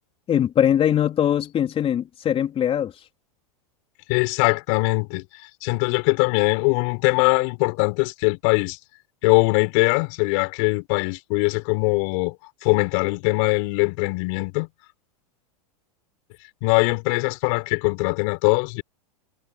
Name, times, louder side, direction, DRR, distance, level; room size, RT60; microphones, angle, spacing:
voice 1, 0.3-2.9, left 10 dB, 30° left, 3.5 m, -21 dB
voice 2, 4.1-5.2 5.6-8.8 9.2-12.4 12.6-14.7 16.6-18.8, left 32 dB, 55° left, 4.3 m, -21 dB
hypercardioid pair, 110°, 19 cm